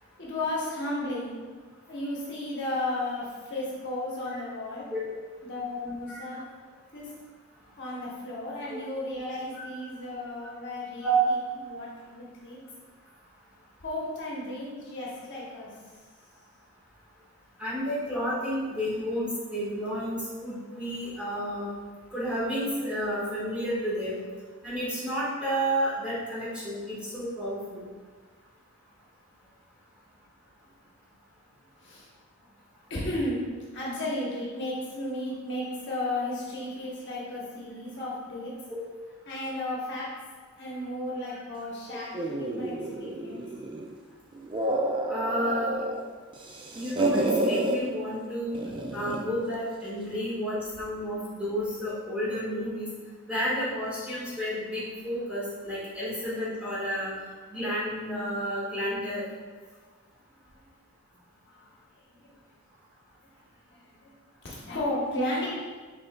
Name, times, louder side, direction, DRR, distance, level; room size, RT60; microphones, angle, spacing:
voice 1, 0.2-1.4 1.9-4.9 5.4-6.4 6.9-7.1 7.8-11.4 11.7-12.6 13.8-15.7 31.8-32.1 32.9-33.4 33.7-38.5 39.3-40.1 40.6-42.7 43.0-43.4 60.6-60.7 61.4-61.7 62.2-62.3 63.7-64.1 64.4-65.6, left 1 dB, 55° left, -5 dB, 1.0 m, -34 dB
voice 2, 17.6-21.7 22.1-24.2 24.6-27.8 38.7-38.8 41.3-41.4 41.9-42.0 45.1-45.7 46.7-48.6 48.9-52.9 53.2-57.1 57.5-59.2, right 1 dB, 5° right, -10 dB, 1.5 m, -31 dB
sound 1, 42.1-43.9 44.3-46.0 46.3-47.8 48.5-49.3, right 1 dB, 20° right, 0.3 m, -29 dB
6.0 x 3.7 x 2.2 m, 1.5 s
head